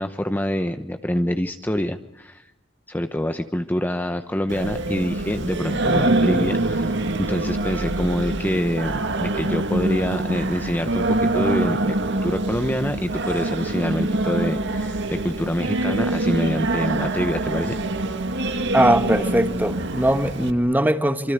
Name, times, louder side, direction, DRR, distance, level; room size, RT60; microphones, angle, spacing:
voice 1, 0.0-2.4 2.9-12.0 12.2-17.8, equal, 10° left, 0.9 m, -26 dB
Singing, 4.5-20.5, right 2 dB, 65° right, 1.9 m, -25 dB
voice 2, 18.7-21.3, right 1 dB, 10° right, 1.3 m, -20 dB
26.5 x 24.5 x 8.0 m
head